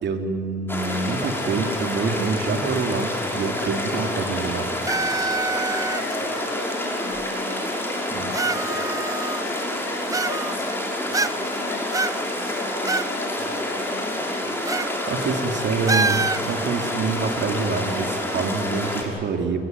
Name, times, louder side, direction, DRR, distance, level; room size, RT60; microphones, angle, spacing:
voice 1, 0.0-4.9 8.1-8.3 14.6-19.6, right 4 dB, 65° right, 5 dB, 3.2 m, -26 dB
sound 1, 0.7-19.0, left 1 dB, 10° left, 6.1 m, -28 dB
sound 2, 4.9-6.2 7.2-7.3 8.3-9.6 10.1-10.8 11.1-11.6 11.9-13.1 13.4-13.5 14.7-14.9 15.2-15.4 15.9-16.5, right 3 dB, 15° right, 0.6 m, -26 dB
voice 2, 5.9-14.6, left 4 dB, 80° left, 1 dB, 7.9 m, -39 dB
29.5 x 20.5 x 9.7 m, 2.5 s
cardioid pair, 90°, 20 cm